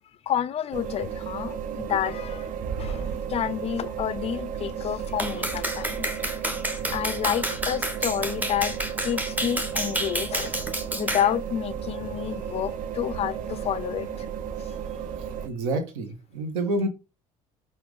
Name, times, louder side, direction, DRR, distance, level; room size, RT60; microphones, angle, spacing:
voice 1, 0.3-2.5 2.8-6.1 6.9-10.6 10.9-14.1, left 10 dB, 35° left, 0.4 m, -29 dB
sound 1, 0.7-15.5, right 7 dB, 50° right, 0.5 m, -34 dB
Clapping, 5.2-11.3, right 1 dB, 10° right, 1.0 m, -30 dB
voice 2, 15.4-16.9, right 2 dB, 65° right, 0.9 m, -28 dB
5.7 x 2.6 x 3.5 m
figure-of-eight pair, 55°, 18 cm